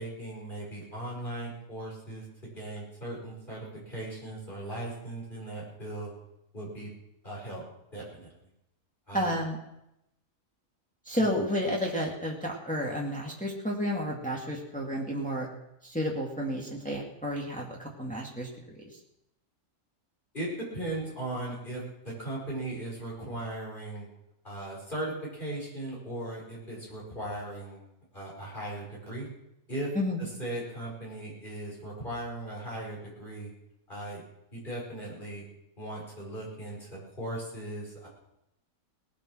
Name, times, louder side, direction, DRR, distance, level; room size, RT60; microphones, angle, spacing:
voice 1, 0.0-2.2 2.6-6.1 6.5-6.9 7.2-7.6 7.9-8.3 9.1-9.3 11.2-11.3 20.3-24.1 24.4-27.8 28.1-29.3 29.7-29.9 30.2-33.5 33.9-34.2 34.5-35.4 35.8-36.9 37.2-38.1, right 1 dB, 35° left, -5 dB, 5.6 m, -38 dB
voice 2, 9.1-9.6 11.1-15.5 15.8-18.9 29.9-30.3, equal, 5° left, -2 dB, 2.3 m, -31 dB
19.0 x 11.0 x 6.3 m, 0.86 s
omnidirectional pair, 1.4 m